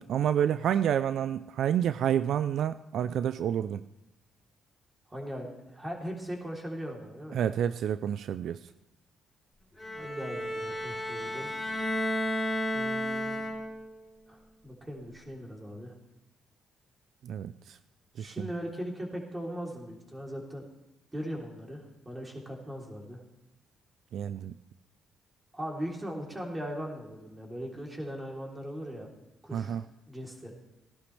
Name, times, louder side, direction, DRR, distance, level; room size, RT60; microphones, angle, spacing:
voice 1, 0.0-3.8 7.3-8.6 17.2-17.8 18.2-18.5 24.1-24.5 29.5-29.8, right 9 dB, 70° right, 13 dB, 0.3 m, -29 dB
voice 2, 5.1-7.4 9.9-11.5 12.7-13.4 14.3-15.9 18.2-20.6 21.1-23.2 25.5-29.1 29.4-29.7 30.1-30.5, equal, 15° right, 0 dB, 3.2 m, -39 dB
Bowed string instrument, 9.8-13.9, equal, 5° left, 3.6 m, -32 dB
17.5 x 11.5 x 3.3 m, 0.97 s
cardioid pair, 90°, 0 cm